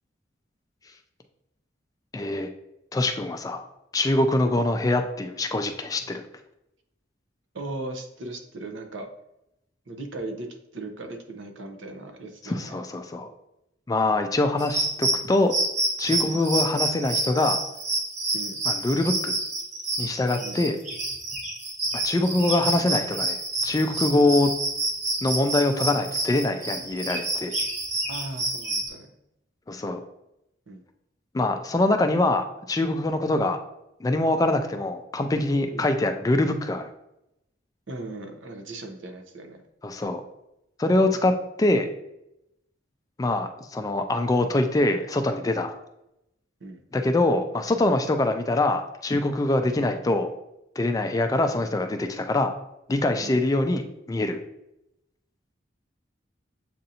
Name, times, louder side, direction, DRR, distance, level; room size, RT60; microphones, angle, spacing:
voice 1, 2.1-2.5 2.9-3.6 3.9-6.2 12.4-13.3 13.9-15.5 16.0-17.6 18.7-19.4 20.0-20.8 22.0-24.5 25.2-27.6 29.7-30.0 31.3-33.6 34.0-36.9 39.8-40.2 40.8-41.3 41.6-41.9 43.2-45.7 46.9-50.3 50.8-52.5 52.9-54.4, left 2 dB, 20° left, 6 dB, 0.3 m, -24 dB
voice 2, 7.5-9.1 9.9-10.5 10.7-12.7 16.2-16.4 18.3-18.6 20.4-20.6 28.1-29.1 30.7-30.8 33.3-33.5 35.7-35.9 37.9-39.6 46.6-46.8 49.8-49.9 53.2-53.4, right 2 dB, 85° right, 5 dB, 0.7 m, -38 dB
sound 1, 14.6-28.9, right 2 dB, 40° right, 0.9 m, -28 dB
7.5 x 2.6 x 2.8 m, 0.85 s
head